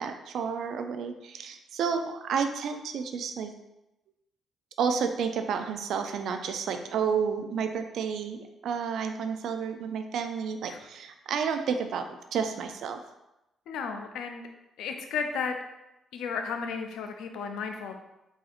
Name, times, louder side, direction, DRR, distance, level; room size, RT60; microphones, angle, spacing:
voice 1, 0.0-3.5 4.8-13.0, right 6 dB, 70° right, 7 dB, 0.3 m, -31 dB
voice 2, 13.7-14.4 14.8-15.6 16.1-18.0, left 5 dB, 85° left, 5 dB, 0.4 m, -33 dB
4.0 x 2.7 x 2.4 m, 0.92 s
cardioid pair, 90°, 0 cm